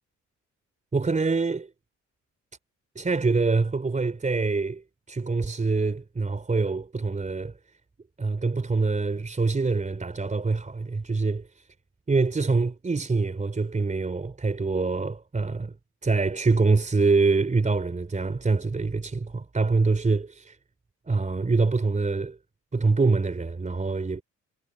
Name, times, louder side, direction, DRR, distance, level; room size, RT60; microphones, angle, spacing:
voice 1, 0.9-1.7 3.0-7.5 8.2-11.6 12.1-15.7 16.0-20.6 21.1-22.4 22.7-24.2, right 3 dB, 25° right, 3.9 m, -25 dB
cardioid pair, 90°, 30 cm